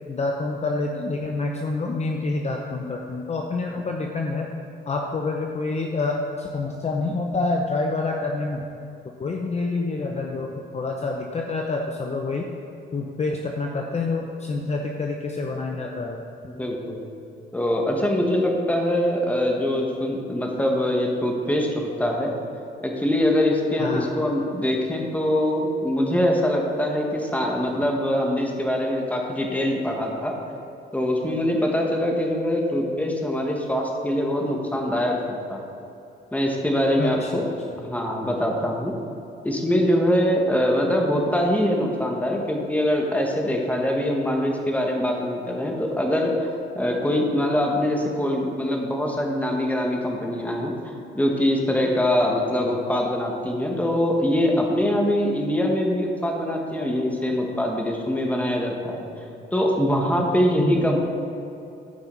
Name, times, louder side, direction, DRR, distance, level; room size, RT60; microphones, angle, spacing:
voice 1, 0.1-4.5 4.9-8.6 9.2-12.5 12.9-16.2 23.7-24.1 37.0-37.8 60.6-60.8, left 3 dB, 35° left, 1 dB, 0.8 m, -27 dB
voice 2, 16.5-17.0 17.5-22.4 22.8-30.4 30.9-35.2 35.5-35.6 36.3-37.5 37.8-38.9 39.4-46.5 46.7-59.1 59.5-61.0, left 1 dB, 5° left, 0 dB, 1.6 m, -23 dB
15.0 x 5.6 x 4.1 m, 2.8 s
cardioid pair, 90°, 20 cm